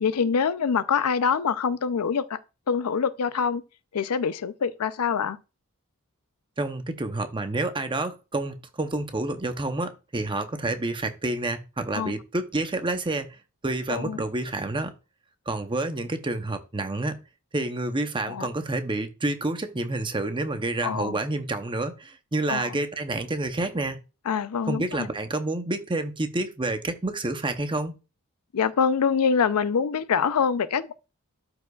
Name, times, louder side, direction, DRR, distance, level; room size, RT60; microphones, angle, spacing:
voice 1, 0.0-2.4 2.7-3.6 3.9-5.4 11.9-12.1 13.9-14.2 18.3-18.5 20.8-21.2 22.5-22.8 24.3-25.1 28.5-30.9, left 6 dB, 80° left, 0.5 m, -25 dB
voice 2, 6.6-13.3 13.6-14.9 15.5-17.2 17.5-24.0 24.7-27.9, right 2 dB, 20° right, 0.7 m, -29 dB
12.5 x 4.8 x 2.3 m
head